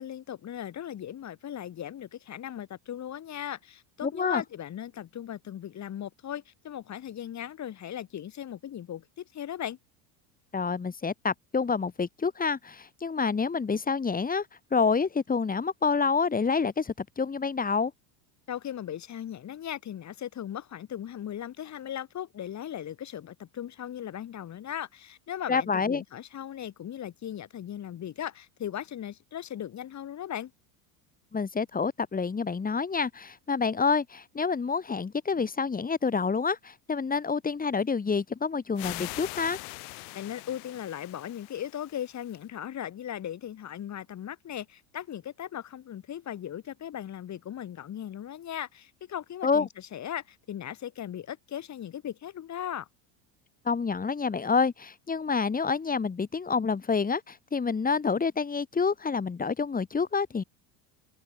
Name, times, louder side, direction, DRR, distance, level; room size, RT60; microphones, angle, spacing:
voice 1, 0.0-9.8 18.5-30.5 40.1-52.9, left 10 dB, 35° left, 2.6 m, -38 dB
voice 2, 4.0-4.4 10.5-14.5 14.7-17.9 25.5-26.0 31.3-39.6 49.4-49.7 53.7-60.4, left 5 dB, 20° left, 2.1 m, -28 dB
sound 1, 38.8-42.4, left 40 dB or more, 70° left, 2.6 m, -42 dB
open air
supercardioid pair, 105°, 46 cm